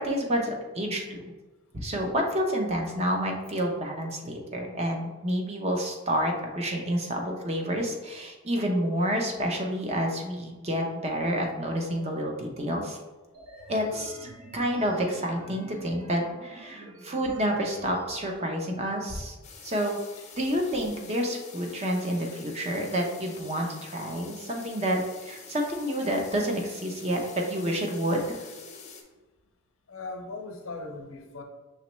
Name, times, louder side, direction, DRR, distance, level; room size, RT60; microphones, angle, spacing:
voice 1, 0.0-1.3 1.7-13.0 13.7-19.4 19.6-20.0 20.4-28.4, equal, 30° right, 1 dB, 0.6 m, -29 dB
sound 1, 13.3-18.3, right 1 dB, 80° right, 0.8 m, -48 dB
sound 2, 19.4-29.0, left 5 dB, 35° left, 0.6 m, -47 dB
voice 2, 29.9-31.4, left 3 dB, 90° left, 3 dB, 0.7 m, -38 dB
5.6 x 3.0 x 3.0 m, 1.2 s
head